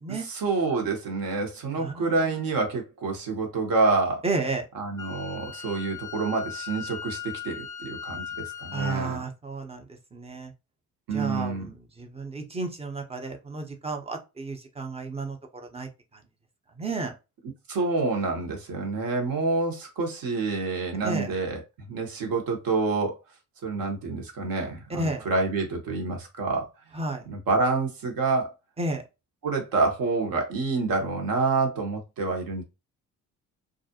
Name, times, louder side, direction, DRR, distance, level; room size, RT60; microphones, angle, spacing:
voice 1, 0.3-4.2 4.7-9.2 11.1-11.7 17.7-21.6 21.9-23.2 23.6-26.7 27.3-28.5 29.4-32.6, right 3 dB, 50° right, 1.1 m, -27 dB
voice 2, 1.8-2.4 4.2-4.7 8.7-10.5 11.1-15.4 15.7-16.2 16.8-17.1 21.0-21.3 24.9-25.3 26.9-27.2 28.8-29.0, right 3 dB, 15° right, 0.8 m, -32 dB
Wind instrument woodwind instrument, 5.0-9.0, left 8 dB, 10° left, 0.3 m, -38 dB
2.4 x 2.0 x 2.8 m
hypercardioid pair, 45°, 43 cm